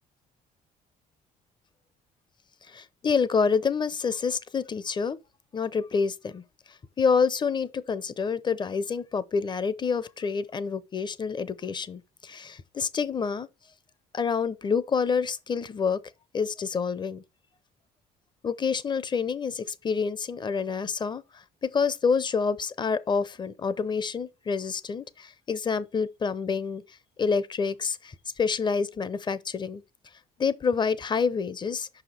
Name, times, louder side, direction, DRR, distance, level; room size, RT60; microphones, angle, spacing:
voice 1, 2.7-5.2 5.5-6.4 6.7-13.5 14.1-16.0 16.3-17.2 18.4-26.8 27.2-29.8 30.4-31.9, left 5 dB, 25° left, 0.6 m, -28 dB
5.6 x 5.0 x 4.1 m
cardioid pair, 110°, 17 cm